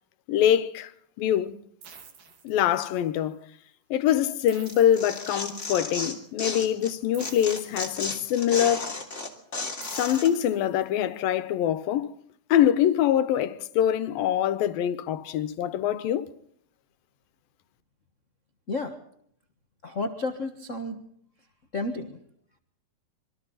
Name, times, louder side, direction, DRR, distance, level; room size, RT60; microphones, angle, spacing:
voice 1, 0.3-0.9 1.2-1.5 2.4-3.4 3.9-9.0 9.8-12.1 12.5-16.3, left 10 dB, 90° left, 2.9 m, -24 dB
sound 1, 1.8-3.2 4.5-5.8 7.1-8.5 9.8-11.2, right 6 dB, 70° right, 4.3 m, -50 dB
Tearing, 4.7-6.9 7.2-10.3, left 3 dB, 20° left, 2.9 m, -33 dB
voice 2, 19.8-21.0 21.7-22.2, left 2 dB, 45° left, 0.9 m, -31 dB
27.0 x 24.0 x 4.1 m
omnidirectional pair, 4.0 m